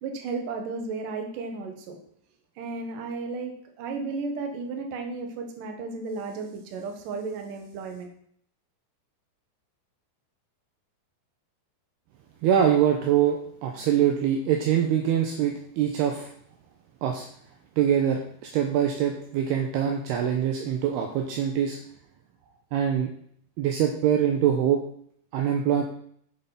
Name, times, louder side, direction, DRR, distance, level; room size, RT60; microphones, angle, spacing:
voice 1, 0.0-2.0 2.6-8.1, right 4 dB, 60° right, 4 dB, 2.7 m, -34 dB
voice 2, 12.4-16.3 17.0-17.3 17.8-21.8 22.7-23.1 23.6-24.8 25.3-25.8, right 9 dB, 75° right, 2 dB, 2.7 m, -24 dB
9.0 x 6.7 x 5.8 m, 0.64 s
omnidirectional pair, 5.0 m